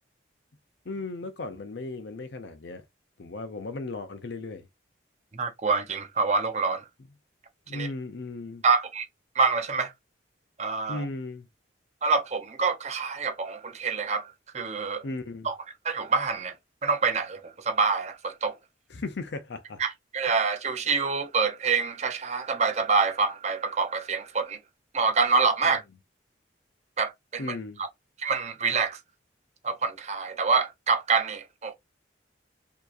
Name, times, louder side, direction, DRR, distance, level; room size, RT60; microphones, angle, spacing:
voice 1, 0.9-2.8 3.2-4.7 7.7-8.6 10.9-11.5 15.0-15.5 18.9-19.8 27.4-27.8, left 3 dB, 65° left, 0.6 m, -36 dB
voice 2, 5.3-6.8 7.7-7.9 8.6-9.1 9.3-9.9 10.6-11.0 12.0-15.0 15.4-15.5 15.8-16.5 16.8-18.6 19.8-24.6 24.9-25.8 27.0-27.9 28.2-29.0 29.6-31.7, right 4 dB, 35° right, 0.7 m, -26 dB
4.6 x 2.9 x 2.5 m
head